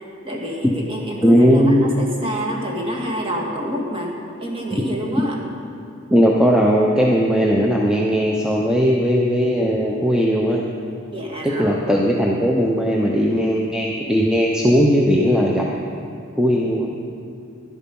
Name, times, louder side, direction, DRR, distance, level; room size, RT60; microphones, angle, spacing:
voice 1, 0.2-4.1 4.4-5.4 11.1-11.8, equal, 25° right, -2 dB, 2.0 m, -27 dB
voice 2, 1.2-1.9 6.1-10.6 11.6-15.7 16.4-17.0, equal, 5° right, -2 dB, 0.7 m, -17 dB
12.0 x 11.0 x 5.4 m, 2.7 s
head